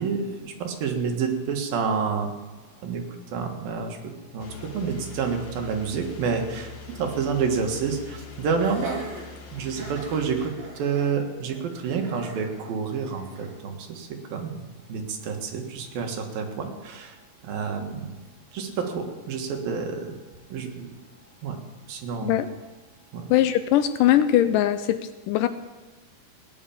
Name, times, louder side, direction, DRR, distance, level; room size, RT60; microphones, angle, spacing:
voice 1, 0.0-2.3 2.8-3.0 3.3-6.7 7.0-9.0 9.5-14.6 14.9-17.2 17.4-18.1 18.5-20.2 20.5-20.9 21.4-21.6 21.9-22.3 23.1-23.3, right 5 dB, 75° right, 3 dB, 3.4 m, -29 dB
sound 1, 4.4-10.5, left 3 dB, 45° left, 1.7 m, -43 dB
Laughter, 8.6-13.5, right 1 dB, 50° right, 7.3 m, -43 dB
voice 2, 23.3-25.5, left 12 dB, 80° left, 12 dB, 2.0 m, -21 dB
18.0 x 10.5 x 7.1 m, 1.2 s
omnidirectional pair, 4.1 m